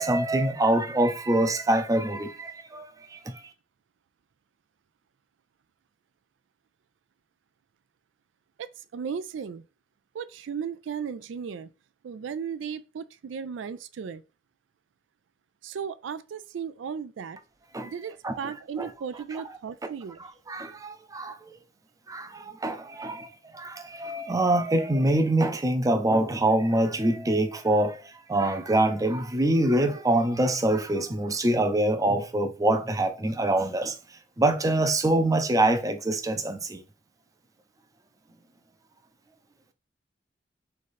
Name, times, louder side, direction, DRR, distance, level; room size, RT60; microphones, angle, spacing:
voice 1, 0.0-3.2 17.7-17.9 18.2-18.5 18.8-18.9 19.3-19.4 20.2-21.4 22.1-23.3 23.5-28.0 28.3-33.9 34.4-36.8, right 1 dB, 20° right, 0.5 m, -25 dB
voice 2, 8.9-9.6 10.1-11.7 12.0-14.2 15.6-17.4 17.8-20.2, right 7 dB, 85° right, 0.4 m, -35 dB
3.6 x 3.3 x 4.1 m
head